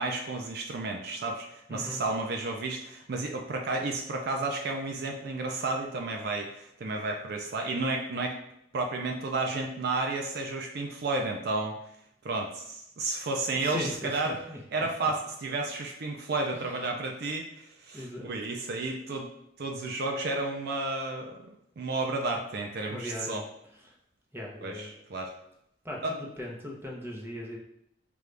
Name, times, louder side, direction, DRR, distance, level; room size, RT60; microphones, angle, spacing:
voice 1, 0.0-8.4 8.7-11.8 12.2-14.4 14.7-19.3 19.6-23.4 24.6-25.3 26.0-26.1, right 2 dB, 55° right, 2 dB, 0.5 m, -32 dB
voice 2, 1.7-2.1 13.6-14.6 15.0-15.1 16.5-17.0 17.9-18.3 22.9-23.4 23.7-24.0 24.3-24.9 25.8-27.6, left 1 dB, 10° right, -2 dB, 0.7 m, -39 dB
5.1 x 2.3 x 3.3 m, 0.77 s
head